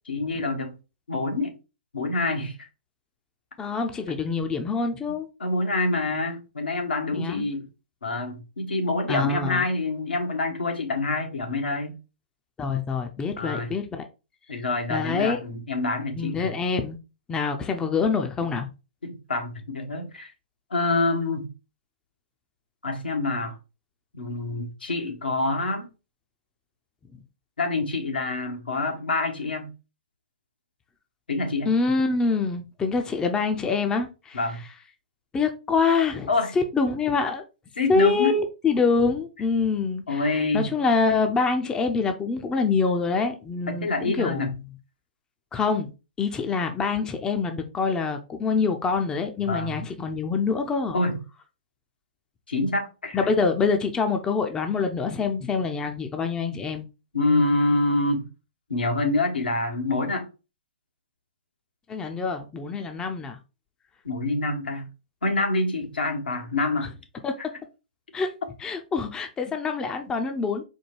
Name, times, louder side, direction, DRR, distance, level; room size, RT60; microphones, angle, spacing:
voice 1, 0.1-0.7 1.1-1.5 1.9-2.7 5.4-7.7 8.0-11.9 13.4-13.7 14.5-16.5 19.0-20.3 20.7-21.5 22.8-23.5 24.1-25.9 27.6-29.7 31.3-31.7 34.3-34.6 36.3-36.5 37.8-38.3 40.1-40.7 43.7-44.5 49.5-49.8 50.9-51.2 52.5-53.2 57.1-58.3 58.7-60.3 64.0-64.9 65.2-66.9, left 2 dB, 80° left, 1.3 m, -26 dB
voice 2, 3.6-5.3 7.1-7.4 9.1-9.7 12.6-14.0 14.9-15.4 16.2-17.0 17.3-18.7 31.6-34.4 35.3-36.3 36.7-37.4 37.9-44.5 45.5-45.9 46.2-51.0 53.1-56.9 61.9-63.4 67.2-67.3 68.1-68.3 68.6-70.6, left 4 dB, 15° left, 0.6 m, -25 dB
4.4 x 2.3 x 4.6 m
figure-of-eight pair, 125°, 5 cm